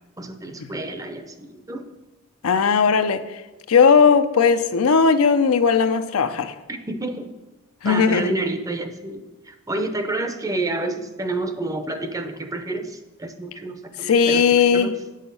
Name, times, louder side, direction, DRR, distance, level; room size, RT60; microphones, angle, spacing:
voice 1, 0.2-1.9 6.7-7.3 7.8-14.4 14.7-14.9, right 2 dB, 15° right, 0.6 m, -29 dB
voice 2, 2.4-3.2 3.7-6.5 7.8-8.3 14.0-14.9, left 6 dB, 85° left, 0.6 m, -17 dB
8.5 x 6.5 x 5.3 m
head